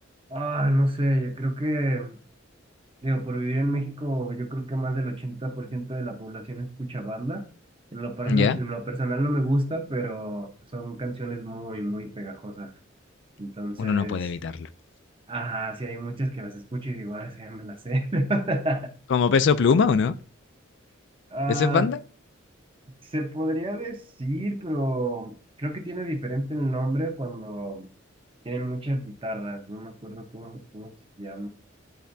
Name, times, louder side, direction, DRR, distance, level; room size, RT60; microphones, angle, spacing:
voice 1, 0.3-2.2 3.0-7.5 7.9-12.7 13.4-14.3 15.3-18.9 21.3-21.9 23.0-27.9 28.4-30.9 31.2-31.5, right 1 dB, 25° right, 0.9 m, -29 dB
voice 2, 8.3-8.6 13.8-14.5 19.1-20.1 21.6-22.0, left 5 dB, 60° left, 0.4 m, -21 dB
10.0 x 3.4 x 2.7 m
head